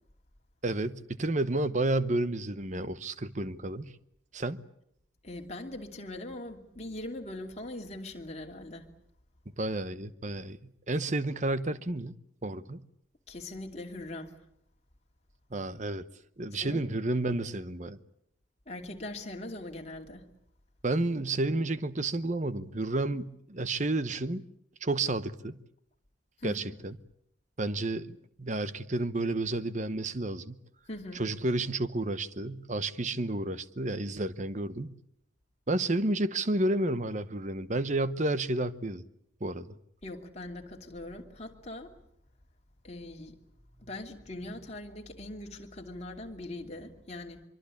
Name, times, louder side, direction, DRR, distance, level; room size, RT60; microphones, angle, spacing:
voice 1, 0.6-3.9 4.3-4.6 9.6-10.6 10.9-12.1 12.4-12.8 15.5-16.1 16.4-18.0 20.8-24.4 24.8-25.6 26.4-26.9 27.6-30.6 31.1-35.0 35.7-39.0 39.4-39.7, right 2 dB, 35° right, 1.0 m, -31 dB
voice 2, 5.2-8.9 13.3-14.4 16.6-16.8 18.7-20.2 26.4-26.6 30.9-31.2 40.0-41.9 42.8-43.4 43.8-47.4, left 1 dB, 30° left, 2.8 m, -41 dB
25.0 x 24.0 x 8.5 m
head